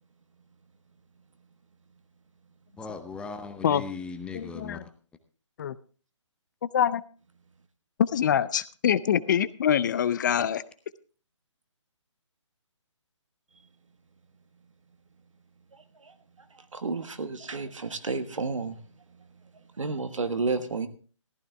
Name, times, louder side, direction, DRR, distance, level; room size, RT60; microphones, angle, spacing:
voice 1, 2.8-4.9, left 4 dB, 5° left, 8 dB, 0.7 m, -38 dB
voice 2, 4.3-4.8 5.6-5.7 6.7-7.0 8.1-10.6, left 9 dB, 35° left, 17 dB, 0.5 m, -25 dB
voice 3, 16.7-18.8 19.8-20.9, right 3 dB, 80° right, 9 dB, 1.5 m, -31 dB
14.5 x 12.0 x 3.4 m, 0.39 s
figure-of-eight pair, 150°, 16 cm